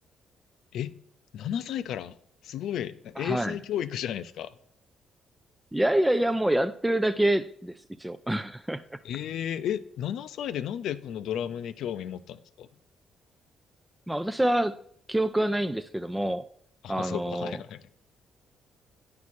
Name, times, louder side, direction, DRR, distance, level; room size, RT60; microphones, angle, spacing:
voice 1, 1.3-2.2 2.4-4.6 9.0-12.7 16.8-17.9, left 10 dB, 80° left, 0.5 m, -33 dB
voice 2, 3.2-3.5 5.7-9.0 14.1-14.8 15.1-16.4 16.9-17.6, right 1 dB, 5° right, 0.4 m, -26 dB
9.5 x 4.7 x 4.1 m
cardioid pair, 90°, 0 cm